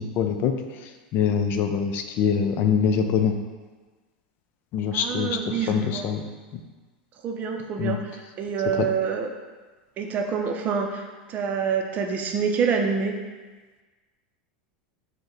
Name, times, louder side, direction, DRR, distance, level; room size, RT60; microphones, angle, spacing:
voice 1, 0.0-3.4 4.7-6.2 6.5-6.6 7.8-8.0 8.7-8.9, left 7 dB, 50° left, 6 dB, 0.4 m, -24 dB
voice 2, 4.9-6.0 7.2-8.0 8.4-9.3 10.0-13.1, right 6 dB, 40° right, 4 dB, 0.5 m, -26 dB
5.1 x 2.1 x 3.8 m, 1.3 s
hypercardioid pair, 110°, 5 cm